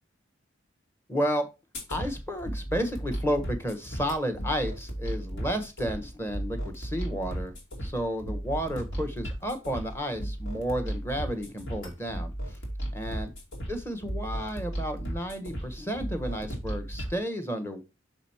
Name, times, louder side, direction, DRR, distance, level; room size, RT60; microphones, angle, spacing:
voice 1, 1.1-1.5 1.9-7.5 7.8-12.6 12.9-13.3 13.7-17.8, equal, 15° left, 8 dB, 1.1 m, -32 dB
sound 1, 1.7-17.2, right 1 dB, 70° left, 2.5 m, -35 dB
6.3 x 5.0 x 4.3 m, 0.26 s
head